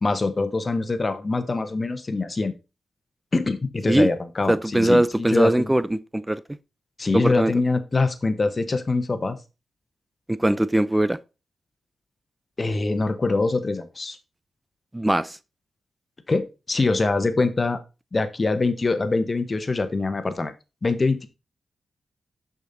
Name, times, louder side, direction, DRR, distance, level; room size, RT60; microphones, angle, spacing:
voice 1, 0.0-2.5 3.3-5.7 7.0-9.4 12.6-14.2 16.3-17.8 18.1-20.5 20.8-21.3, left 3 dB, 40° left, 1.1 m, -24 dB
voice 2, 4.5-6.4 7.1-7.5 10.3-11.2 14.9-15.4, right 1 dB, 15° right, 0.5 m, -21 dB
6.5 x 5.2 x 4.1 m
cardioid pair, 55°, 0 cm